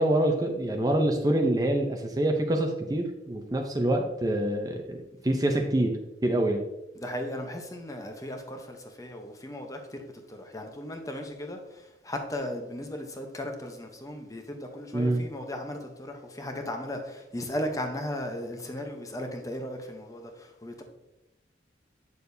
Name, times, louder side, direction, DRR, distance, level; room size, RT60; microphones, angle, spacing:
voice 1, 0.0-6.6 14.9-15.2, right 1 dB, 20° right, 3 dB, 0.6 m, -26 dB
voice 2, 7.0-20.8, left 1 dB, 20° left, 4 dB, 0.8 m, -36 dB
8.4 x 6.7 x 2.7 m, 0.92 s
head